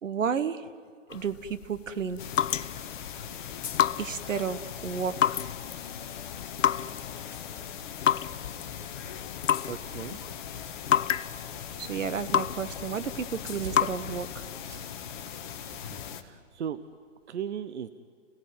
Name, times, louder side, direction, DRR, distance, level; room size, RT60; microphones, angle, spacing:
voice 1, 0.0-0.7 1.1-2.2 4.0-5.4 11.8-14.5, right 6 dB, 75° right, 13 dB, 1.4 m, -32 dB
sound 1, 1.1-14.6, left 9 dB, 75° left, 0.7 m, -31 dB
sound 2, 2.2-16.2, left 8 dB, 40° left, 1.7 m, -40 dB
voice 2, 9.7-10.2 15.9-16.8 17.3-17.9, right 8 dB, 60° right, 12 dB, 1.1 m, -36 dB
sound 3, 13.3-17.3, right 4 dB, 40° right, 4.6 m, -50 dB
29.0 x 17.5 x 9.5 m, 2.1 s
hypercardioid pair, 140°, 38 cm